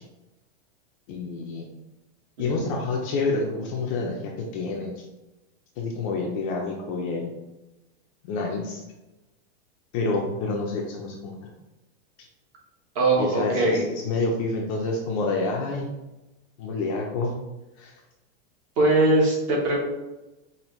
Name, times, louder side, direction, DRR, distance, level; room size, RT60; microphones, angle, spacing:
voice 1, 1.1-1.6 2.4-4.9 5.8-7.3 8.2-8.8 9.9-11.4 13.2-15.9 16.6-17.3 17.8-17.9, left 3 dB, 30° left, 0 dB, 0.5 m, -28 dB
voice 2, 12.9-13.8 18.8-19.8, right 2 dB, 35° right, -2 dB, 1.2 m, -21 dB
5.1 x 2.6 x 3.0 m, 1.0 s
supercardioid pair, 170°, 33 cm